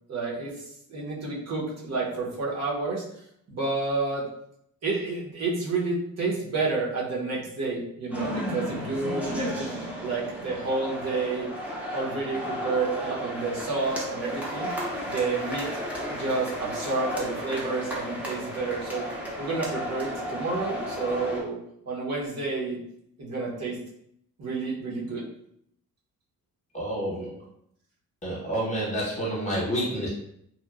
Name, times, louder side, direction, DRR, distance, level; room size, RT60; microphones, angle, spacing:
voice 1, 0.1-0.6 0.9-3.0 3.5-4.3 4.8-9.7 10.0-11.5 11.9-14.7 15.0-15.7 16.1-19.1 19.4-21.6 21.9-22.8 23.2-23.8 24.4-25.2, right 3 dB, 50° right, -5 dB, 0.8 m, -30 dB
sound 1, 8.1-21.4, equal, 5° right, 0.5 m, -34 dB
voice 2, 26.7-27.4 28.2-30.1, right 1 dB, 20° left, -6 dB, 0.9 m, -29 dB
2.8 x 2.2 x 2.3 m, 0.72 s
cardioid pair, 140°, 34 cm